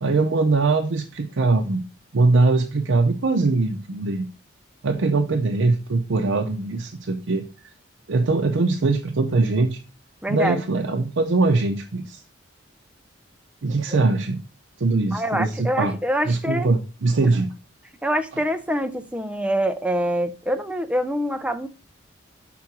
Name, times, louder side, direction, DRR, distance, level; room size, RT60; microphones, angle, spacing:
voice 1, 0.0-1.8 2.1-4.3 4.8-7.4 8.1-9.8 10.3-12.2 13.6-14.4 14.8-15.9 16.3-17.5, right 3 dB, 80° right, 0.6 m, -21 dB
voice 2, 10.2-10.6 13.9-14.1 15.1-16.7 18.0-21.7, equal, 5° right, 0.4 m, -25 dB
5.9 x 3.8 x 5.8 m
head